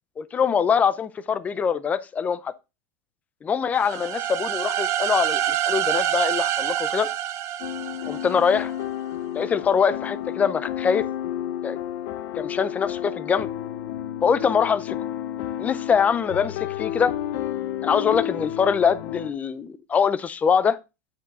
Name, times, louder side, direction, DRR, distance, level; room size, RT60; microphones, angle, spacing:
voice 1, 0.2-2.5 3.4-7.1 8.1-8.7 9.3-11.1 11.6-11.8 12.4-13.5 14.2-15.0 15.6-17.1 17.8-20.8, left 6 dB, 15° left, 0.5 m, -23 dB
sound 1, 3.8-8.6, right 11 dB, 30° right, 0.6 m, -26 dB
sound 2, 7.6-19.3, left 12 dB, 50° left, 0.7 m, -31 dB
9.2 x 4.7 x 3.6 m
supercardioid pair, 150°, 9 cm